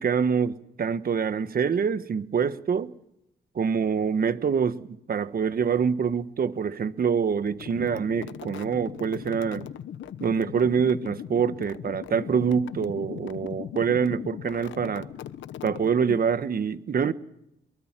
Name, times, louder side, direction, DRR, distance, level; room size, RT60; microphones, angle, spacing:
voice 1, 0.0-2.9 3.5-9.7 10.2-15.1 15.6-17.1, right 6 dB, 50° right, 1.5 m, -25 dB
sound 1, 7.4-16.4, left 10 dB, 80° left, 1.1 m, -39 dB
23.5 x 23.0 x 7.6 m
cardioid pair, 100°, 19 cm